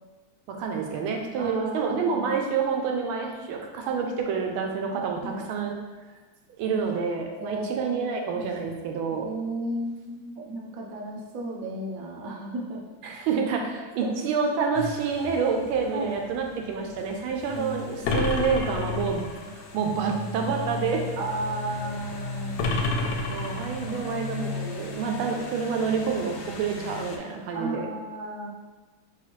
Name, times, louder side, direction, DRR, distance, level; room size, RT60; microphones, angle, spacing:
voice 1, 0.5-5.8 6.6-9.3 13.0-19.2 19.7-21.0 23.3-27.9, right 5 dB, 85° right, 2 dB, 1.4 m, -28 dB
voice 2, 1.4-2.4 4.9-5.5 7.4-8.4 9.1-12.8 14.0-14.1 15.9-16.1 17.5-17.9 21.2-22.7 23.9-24.4 27.5-28.5, right 2 dB, 65° right, -1 dB, 0.8 m, -34 dB
sound 1, 14.7-27.2, left 3 dB, 90° left, 1.5 m, -37 dB
sound 2, 18.0-19.5 22.6-24.1, left 3 dB, 75° left, 1.0 m, -29 dB
4.8 x 3.5 x 3.0 m, 1.3 s
omnidirectional pair, 2.3 m